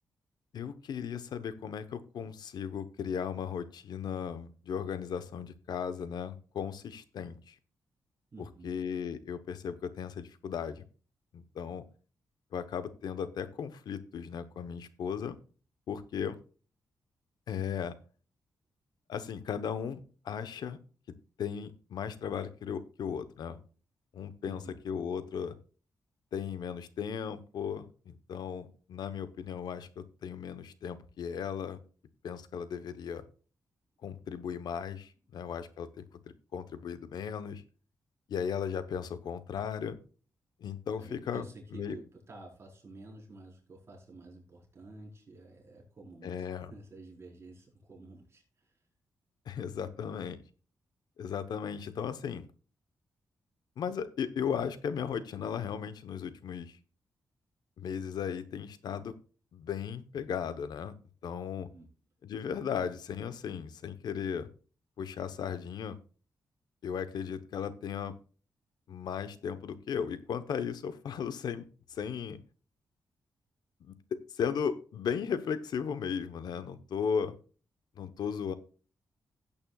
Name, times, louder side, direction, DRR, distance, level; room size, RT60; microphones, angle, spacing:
voice 1, 0.5-7.5 8.6-10.8 11.3-11.8 12.5-15.4 15.9-16.4 17.5-17.9 19.1-20.8 21.4-23.6 24.1-25.6 26.3-31.8 32.2-33.2 34.0-36.0 36.5-37.6 38.3-40.0 40.6-41.5 41.7-42.0 46.2-46.7 49.5-50.4 51.2-52.5 53.8-56.8 57.8-59.1 59.5-60.9 61.2-61.7 62.2-64.5 65.0-66.0 66.8-68.1 68.9-72.4 73.8-77.3 78.0-78.5, left 7 dB, 75° left, 12 dB, 1.0 m, -36 dB
voice 2, 8.3-8.8 24.5-24.8 35.3-35.4 41.0-48.8 61.5-61.9, right 2 dB, 40° right, -2 dB, 4.6 m, -50 dB
15.5 x 8.7 x 2.4 m, 0.38 s
cardioid pair, 105°, 7 cm